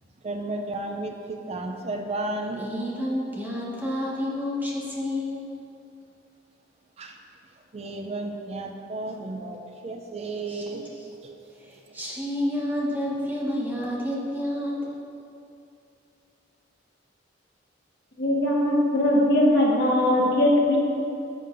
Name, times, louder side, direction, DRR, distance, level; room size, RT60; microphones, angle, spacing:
voice 1, 0.2-2.7 7.0-7.2 7.7-9.6 9.8-10.9 11.2-11.3, right 2 dB, 35° right, 4 dB, 0.4 m, -33 dB
voice 2, 2.6-5.4 10.5-10.6 11.0-11.1 11.6-15.0, left 1 dB, 10° right, -5 dB, 1.1 m, -29 dB
voice 3, 18.2-20.8, left 1 dB, 60° left, -4 dB, 1.5 m, -20 dB
11.0 x 7.0 x 2.6 m, 2.7 s
head